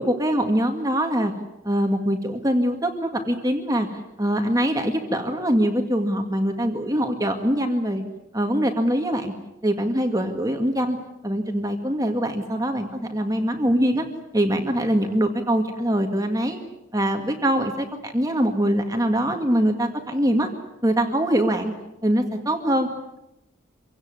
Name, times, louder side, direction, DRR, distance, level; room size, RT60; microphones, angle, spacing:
voice 1, 0.0-1.3 1.6-3.9 4.2-8.0 8.3-9.3 9.6-11.0 11.2-14.1 14.3-16.6 16.9-20.5 20.8-21.7 22.0-22.9, equal, 15° right, 4 dB, 2.0 m, -23 dB
26.0 x 17.5 x 9.7 m, 0.91 s
head